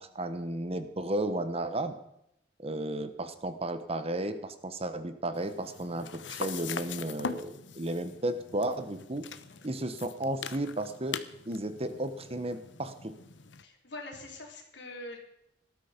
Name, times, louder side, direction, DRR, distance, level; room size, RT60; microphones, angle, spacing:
voice 1, 0.0-2.0 2.6-9.3 9.6-11.2 11.5-13.1, right 1 dB, 35° right, 10 dB, 1.3 m, -33 dB
sound 1, 5.3-13.6, left 6 dB, 90° left, 1.0 m, -42 dB
voice 2, 9.5-9.9 13.6-15.2, left 2 dB, 70° left, 2 dB, 4.0 m, -44 dB
19.0 x 12.5 x 5.3 m, 0.77 s
head